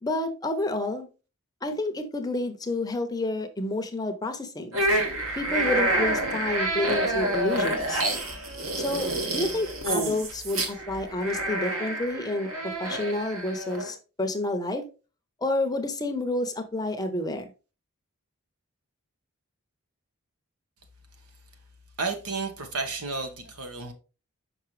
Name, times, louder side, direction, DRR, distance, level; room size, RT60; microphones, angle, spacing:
voice 1, 0.0-1.1 1.6-4.8 5.4-8.0 8.7-12.5 12.8-14.8 15.4-17.5, left 1 dB, 15° left, 0.7 m, -29 dB
sound 1, 4.7-13.9, right 1 dB, 65° right, 1.4 m, -28 dB
voice 2, 22.0-23.9, right 3 dB, 85° right, 1.2 m, -32 dB
5.9 x 5.4 x 3.1 m
head